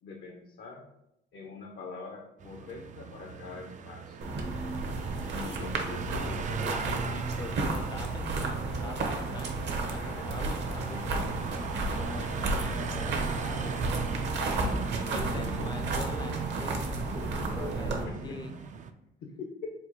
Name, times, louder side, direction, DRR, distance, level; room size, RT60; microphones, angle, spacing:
voice 1, 0.0-0.9 1.3-4.2 5.3-7.2 7.5-7.8 9.8-11.1 14.5-15.0 15.3-15.7 17.8-18.4 19.2-19.7, left 4 dB, 60° left, 1 dB, 0.7 m, -43 dB
sound 1, 2.4-18.9, right 6 dB, 40° right, 0.4 m, -39 dB
sound 2, 4.2-18.0, right 3 dB, 60° right, 0.9 m, -32 dB
voice 2, 6.0-11.3 11.9-14.5 15.1-17.0 17.5-18.6, left 3 dB, 20° left, 7 dB, 0.5 m, -44 dB
4.3 x 2.3 x 4.1 m, 0.84 s
cardioid pair, 90°, 20 cm